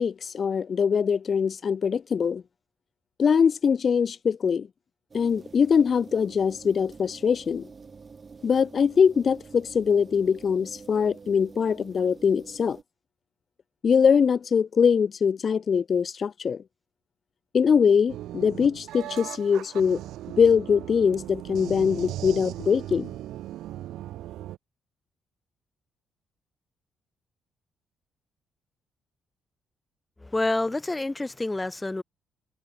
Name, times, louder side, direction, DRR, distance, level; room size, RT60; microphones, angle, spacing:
voice 1, 0.0-2.4 3.2-4.7 5.1-7.7 8.4-12.8 13.8-16.6 17.5-20.0 20.3-23.1, left 6 dB, 45° left, 1.2 m, -22 dB
sound 1, 5.1-12.8, right 5 dB, 35° right, 3.9 m, -47 dB
sound 2, 18.1-24.6, right 14 dB, 85° right, 0.8 m, -38 dB
voice 2, 30.2-32.0, left 2 dB, 15° left, 5.5 m, -28 dB
cardioid pair, 90°, 0 cm